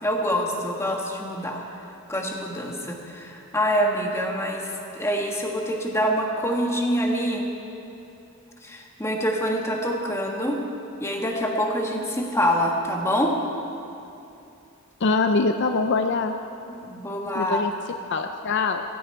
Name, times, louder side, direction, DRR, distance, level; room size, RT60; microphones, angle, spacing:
voice 1, 0.0-1.6 2.1-7.5 8.6-10.6 11.0-13.3 16.7-17.7, equal, 10° left, 1 dB, 1.5 m, -25 dB
voice 2, 15.0-16.3 17.3-17.7 18.1-18.8, left 3 dB, 55° left, 7 dB, 0.5 m, -23 dB
17.0 x 16.0 x 4.6 m, 2.7 s
head